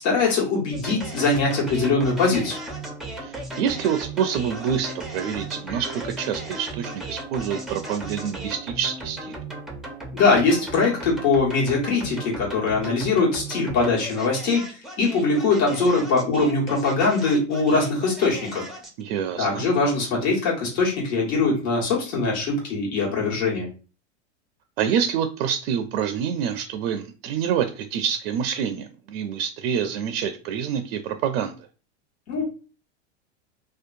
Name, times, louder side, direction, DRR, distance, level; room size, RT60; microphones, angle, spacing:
voice 1, 0.0-2.6 10.1-18.6 19.4-23.7 32.3-32.4, left 3 dB, 70° left, -4 dB, 1.4 m, -22 dB
sound 1, 0.7-19.0, right 2 dB, ahead, 0.5 m, -36 dB
voice 2, 3.2-9.4 19.0-19.6 24.8-31.7, right 8 dB, 60° right, 7 dB, 0.4 m, -27 dB
2.7 x 2.2 x 2.5 m, 0.34 s
hypercardioid pair, 100°, 35 cm